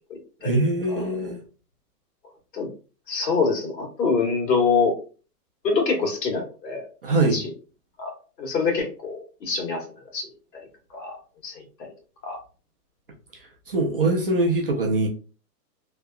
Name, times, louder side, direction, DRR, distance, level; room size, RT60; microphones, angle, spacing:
voice 1, 0.4-1.4 7.0-7.4 13.7-15.1, right 2 dB, 40° right, -1 dB, 0.4 m, -22 dB
voice 2, 3.1-4.9 5.6-6.8 7.3-7.4 8.0-9.8 10.1-10.3 10.9-11.2 11.4-11.6 12.2-12.4, left 4 dB, 85° left, 1 dB, 1.4 m, -25 dB
2.8 x 2.2 x 2.3 m, 0.36 s
hypercardioid pair, 165°, 49 cm